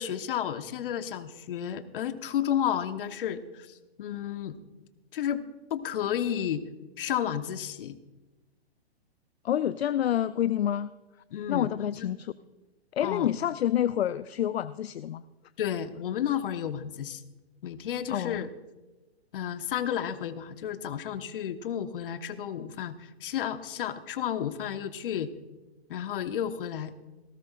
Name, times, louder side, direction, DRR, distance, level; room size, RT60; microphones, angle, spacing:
voice 1, 0.0-4.6 5.1-5.4 5.7-6.6 7.0-8.0 11.3-11.7 12.0-12.1 13.0-13.3 15.6-17.2 17.6-18.5 19.3-25.3 25.9-26.9, left 9 dB, 55° left, 10 dB, 1.1 m, -32 dB
voice 2, 9.4-10.9 11.5-12.3 12.9-15.2 18.1-18.5, left 11 dB, 70° left, 16 dB, 0.5 m, -28 dB
18.5 x 17.5 x 2.5 m, 1.1 s
figure-of-eight pair, 120°, 32 cm